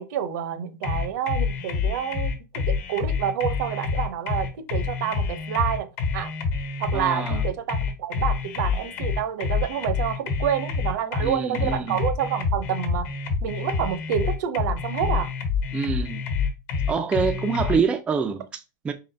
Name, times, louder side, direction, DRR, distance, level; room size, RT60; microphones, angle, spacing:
voice 1, 0.0-2.3 2.7-6.3 6.8-13.1 13.4-15.3, right 9 dB, 70° right, 0.7 m, -28 dB
sound 1, 0.8-17.8, left 5 dB, 55° left, 1.1 m, -27 dB
voice 2, 6.9-7.4 11.2-12.0 15.7-16.2 16.9-18.9, right 5 dB, 10° right, 0.3 m, -26 dB
4.1 x 3.8 x 3.3 m
supercardioid pair, 160°, 10 cm